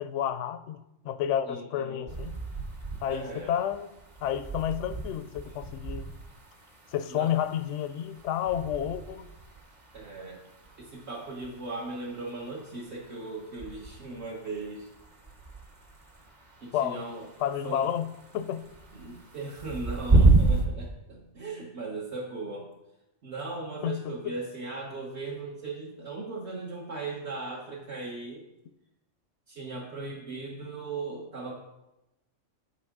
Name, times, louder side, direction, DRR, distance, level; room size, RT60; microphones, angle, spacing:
voice 1, 0.0-2.4 3.0-3.9 4.2-6.1 6.9-9.3 16.7-17.0 17.4-18.7 23.8-24.2, left 10 dB, 70° left, 0.9 m, -30 dB
voice 2, 1.5-2.1 3.1-3.5 5.4-5.5 7.1-7.3 9.9-10.4 10.8-14.9 16.6-17.3 17.6-17.8 18.9-22.7 23.2-28.4 29.5-31.6, right 3 dB, 60° right, 1.4 m, -38 dB
sound 1, 2.1-20.7, right 3 dB, 35° right, 1.2 m, -31 dB
8.9 x 8.2 x 3.6 m
omnidirectional pair, 1.3 m